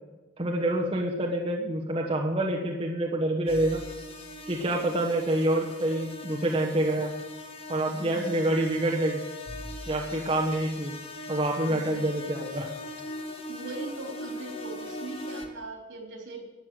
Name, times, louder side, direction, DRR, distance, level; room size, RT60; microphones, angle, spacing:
voice 1, 0.4-3.8 4.5-7.1 7.7-9.2 9.9-10.9 11.3-12.7, right 1 dB, 30° right, -2 dB, 1.2 m, -27 dB
sound 1, 3.5-15.5, left 1 dB, 30° left, 1.3 m, -40 dB
voice 2, 8.0-8.4 13.5-16.5, right 2 dB, 75° right, 1 dB, 3.3 m, -40 dB
12.5 x 8.3 x 7.6 m, 1.1 s
head